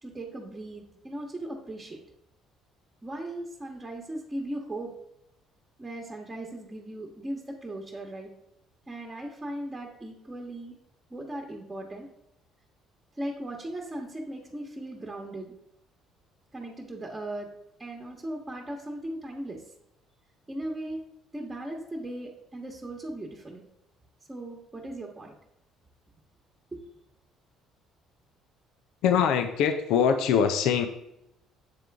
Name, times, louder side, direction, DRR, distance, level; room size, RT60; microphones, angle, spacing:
voice 1, 0.0-2.0 3.0-4.9 5.8-8.3 8.9-10.8 11.1-12.1 13.1-15.5 16.5-17.5 17.8-19.6 20.5-21.0 21.3-23.6 24.3-25.3 26.7-26.9, right 1 dB, 20° right, -2 dB, 1.2 m, -38 dB
voice 2, 29.0-30.9, left 7 dB, 75° left, 7 dB, 0.5 m, -23 dB
7.6 x 3.7 x 3.4 m, 0.81 s
hypercardioid pair, 65°, 0 cm